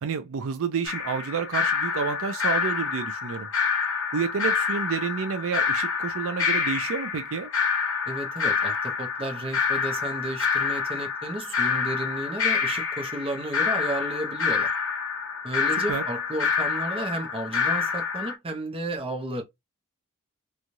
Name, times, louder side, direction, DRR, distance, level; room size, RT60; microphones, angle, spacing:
voice 1, 0.0-3.5 4.1-7.5 15.9-16.0, right 6 dB, 65° right, 0.4 m, -29 dB
sound 1, 0.8-18.3, left 6 dB, 65° left, 0.8 m, -27 dB
voice 2, 8.1-14.7 15.4-19.4, right 1 dB, 25° right, 0.7 m, -33 dB
3.1 x 2.3 x 2.6 m
head